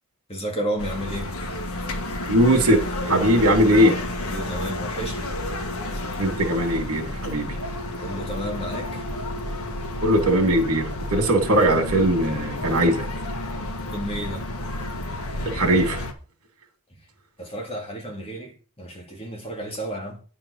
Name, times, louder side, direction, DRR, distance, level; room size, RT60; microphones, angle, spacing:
voice 1, 0.3-1.4 4.2-5.4 8.0-9.1 13.9-14.5 17.4-20.2, right 1 dB, 25° left, 2.5 m, -32 dB
sound 1, 0.8-16.1, left 1 dB, 70° left, 1.5 m, -31 dB
voice 2, 2.3-4.0 6.2-7.6 10.0-13.0 15.5-16.1, right 1 dB, 75° right, 2.6 m, -20 dB
9.7 x 4.6 x 6.4 m
head